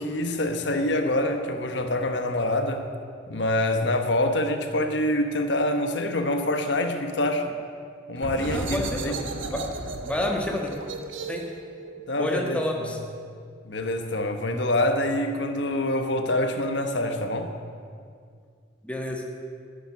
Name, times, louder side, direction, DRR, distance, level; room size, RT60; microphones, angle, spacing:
voice 1, 0.0-2.8 3.3-7.5 8.1-9.2 12.1-13.0 13.6-17.5, left 1 dB, 70° left, 6 dB, 1.2 m, -26 dB
sound 1, 8.2-13.6, right 2 dB, 90° right, 1.3 m, -35 dB
voice 2, 8.5-9.2 9.5-9.7 10.0-10.7 11.3-11.5 12.2-13.0 18.8-19.2, left 1 dB, 5° left, 0 dB, 1.4 m, -29 dB
11.5 x 9.0 x 9.5 m, 2.2 s
head